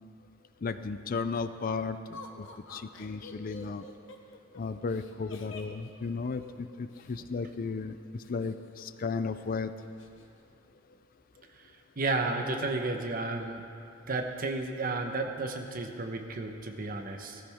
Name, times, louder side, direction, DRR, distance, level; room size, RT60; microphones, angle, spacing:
voice 1, 0.6-3.8 4.6-9.7, left 4 dB, 45° left, 11 dB, 0.4 m, -35 dB
Laughter, 2.1-7.2 8.2-9.1 9.4-9.5 9.8-10.3, left 3 dB, 70° left, 1.1 m, -49 dB
voice 2, 12.0-13.6 14.1-17.4, right 3 dB, 45° right, 4 dB, 1.1 m, -32 dB
16.5 x 14.0 x 3.6 m, 2.6 s
head